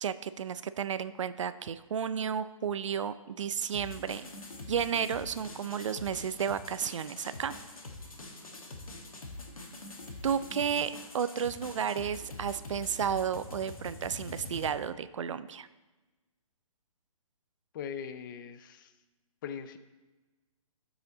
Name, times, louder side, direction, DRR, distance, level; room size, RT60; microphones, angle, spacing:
voice 1, 0.0-4.3 4.7-7.5 10.2-15.7, right 8 dB, 60° right, 14 dB, 0.5 m, -32 dB
sound 1, 3.7-14.7, left 2 dB, 75° left, 1.6 m, -45 dB
voice 2, 17.7-18.9 19.4-19.8, left 7 dB, 35° left, 11 dB, 0.6 m, -40 dB
13.0 x 5.0 x 3.9 m, 1.2 s
figure-of-eight pair, 135°, 18 cm